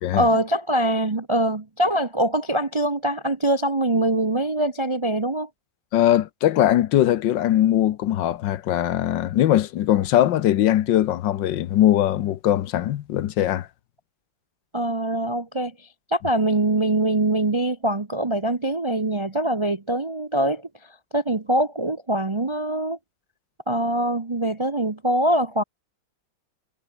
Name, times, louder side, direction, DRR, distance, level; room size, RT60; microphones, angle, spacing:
voice 1, 0.1-5.5 14.7-15.7 16.1-20.7 21.1-23.0 23.7-25.6, right 1 dB, 25° right, 0.6 m, -23 dB
voice 2, 5.9-13.7, left 12 dB, 75° left, 1.5 m, -20 dB
omnidirectional pair, 2.1 m